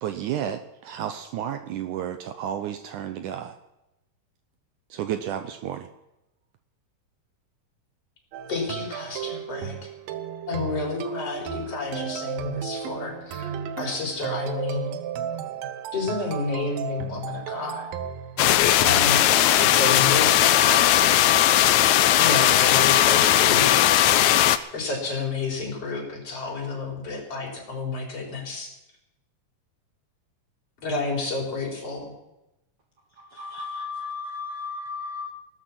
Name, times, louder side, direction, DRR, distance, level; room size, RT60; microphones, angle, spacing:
voice 1, 0.0-3.6 4.9-5.9, right 10 dB, 75° right, 8 dB, 2.1 m, -31 dB
sound 1, 8.3-19.7, right 9 dB, 90° right, 2.8 m, -34 dB
voice 2, 8.5-9.8 10.5-13.5 13.8-14.9 15.9-17.9 18.8-19.2 19.7-20.9 22.2-24.3 24.7-28.7 30.8-32.1, left 3 dB, 45° left, -1 dB, 5.2 m, -30 dB
sound 2, 18.4-24.6, left 12 dB, 75° left, 1.7 m, -18 dB
voice 3, 33.2-35.3, left 4 dB, 55° right, 3 dB, 1.6 m, -34 dB
17.0 x 13.0 x 6.0 m, 0.92 s
omnidirectional pair, 4.0 m